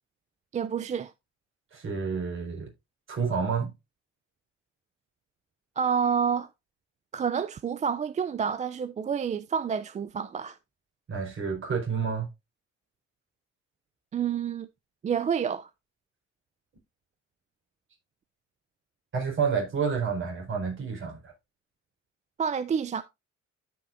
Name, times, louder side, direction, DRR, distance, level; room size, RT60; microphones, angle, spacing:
voice 1, 0.5-1.1 5.8-6.5 7.1-10.6 14.1-14.7 15.0-15.7 22.4-23.0, right 7 dB, 25° right, 0.3 m, -28 dB
voice 2, 1.7-2.7 3.1-3.7 11.1-12.3 19.1-21.3, right 6 dB, 40° right, 4.5 m, -29 dB
13.0 x 5.6 x 2.5 m
cardioid pair, 140°, 30 cm